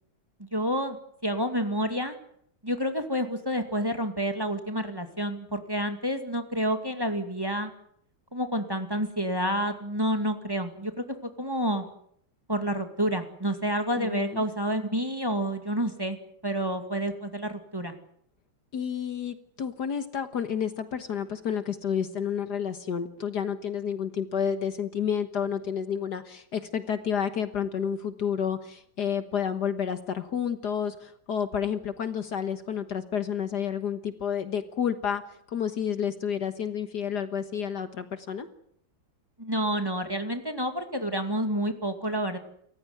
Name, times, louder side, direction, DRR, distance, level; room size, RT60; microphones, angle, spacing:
voice 1, 0.4-2.2 2.6-7.7 8.3-11.9 12.5-16.2 16.4-17.9 39.4-42.4, equal, 10° right, 6 dB, 2.2 m, -29 dB
voice 2, 14.0-14.4 18.7-35.2 35.5-38.5, left 8 dB, 60° left, 10 dB, 1.8 m, -30 dB
28.5 x 15.0 x 9.5 m, 0.68 s
omnidirectional pair, 2.1 m